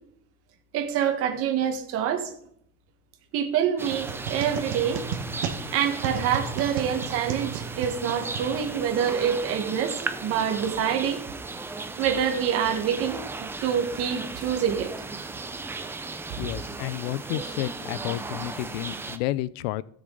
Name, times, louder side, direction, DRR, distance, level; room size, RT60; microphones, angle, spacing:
voice 1, 0.7-2.3 3.3-5.0 5.7-11.2 12.0-14.9 16.4-16.5, right 8 dB, 50° right, 1.5 m, -26 dB
sound 1, 3.8-19.2, right 3 dB, 10° right, 0.4 m, -36 dB
sound 2, 3.9-9.0, right 6 dB, 80° right, 1.6 m, -34 dB
voice 2, 16.4-19.8, left 16 dB, 85° left, 0.5 m, -31 dB
16.5 x 6.3 x 3.9 m
cardioid pair, 160°, 30 cm